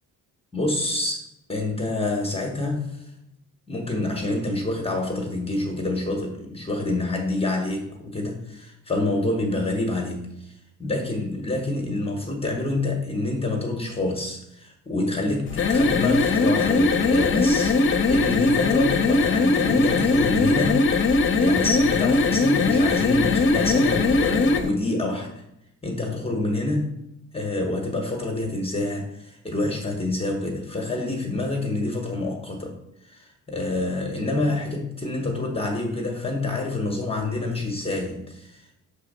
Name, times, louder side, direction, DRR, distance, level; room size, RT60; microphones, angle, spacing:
voice 1, 0.5-1.2 1.5-3.1 3.7-10.5 10.8-17.8 18.1-20.9 21.4-25.4 25.8-27.0 27.3-32.8 33.1-38.7, left 2 dB, 15° left, 2 dB, 1.0 m, -27 dB
sound 1, 15.5-24.7, left 3 dB, 35° left, 0.7 m, -20 dB
5.5 x 3.6 x 5.3 m, 0.84 s
cardioid pair, 115°, 33 cm